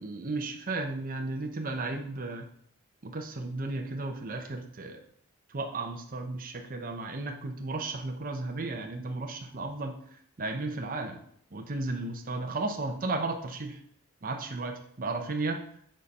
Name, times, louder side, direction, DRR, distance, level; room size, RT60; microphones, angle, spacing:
voice 1, 0.0-2.5 3.0-5.0 5.5-10.0 10.4-11.2 11.5-13.8 14.2-15.6, right 2 dB, 40° right, 3 dB, 0.8 m, -34 dB
7.3 x 4.3 x 5.3 m, 0.66 s
head